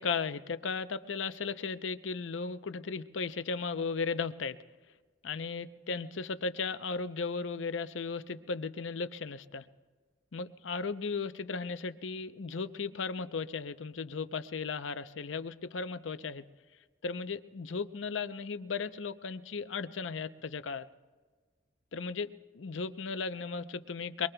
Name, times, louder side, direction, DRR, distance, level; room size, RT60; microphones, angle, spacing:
voice 1, 0.0-4.6 5.2-9.6 10.3-16.4 17.0-20.9 21.9-24.3, left 4 dB, 90° left, 12 dB, 0.6 m, -36 dB
23.5 x 23.5 x 2.3 m, 1.4 s
head